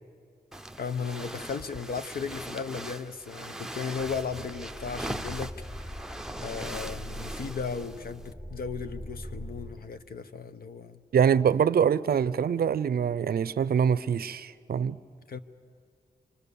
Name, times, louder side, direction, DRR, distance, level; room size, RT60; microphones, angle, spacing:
sound 1, 0.5-8.3, right 1 dB, 5° right, 0.6 m, -40 dB
voice 1, 0.8-5.5 5.8-5.9 6.4-11.0 15.3-15.4, left 5 dB, 65° left, 10 dB, 0.9 m, -36 dB
sound 2, 4.0-9.9, equal, 20° left, 1.4 m, -42 dB
voice 2, 11.1-15.0, right 7 dB, 70° right, 17 dB, 0.5 m, -24 dB
27.5 x 25.0 x 6.9 m, 2.3 s
wide cardioid pair, 110°, 16 cm